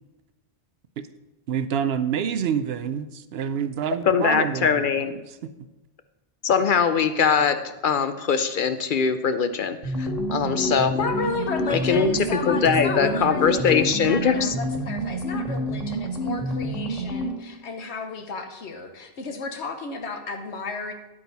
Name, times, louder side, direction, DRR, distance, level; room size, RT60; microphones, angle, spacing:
voice 1, 1.5-5.5, right 8 dB, 70° right, 12 dB, 0.8 m, -28 dB
voice 2, 4.1-5.1 6.4-10.9 11.7-14.5, left 6 dB, 55° left, 10 dB, 0.6 m, -22 dB
sound 1, 9.8-17.5, equal, 35° right, 1.7 m, -28 dB
voice 3, 10.9-20.9, left 4 dB, 80° left, 6 dB, 1.3 m, -33 dB
10.0 x 8.5 x 4.1 m, 1.1 s
omnidirectional pair, 1.1 m